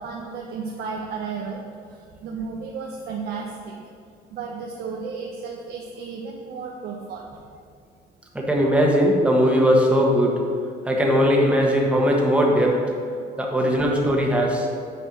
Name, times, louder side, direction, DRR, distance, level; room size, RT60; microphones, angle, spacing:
voice 1, 0.0-3.9 4.3-7.3 13.2-13.4, right 5 dB, 70° right, -1 dB, 0.8 m, -33 dB
voice 2, 8.3-10.4 10.8-12.8 13.4-14.7, equal, 5° right, -1 dB, 1.3 m, -19 dB
6.7 x 4.6 x 6.0 m, 2.3 s
cardioid pair, 110°, 17 cm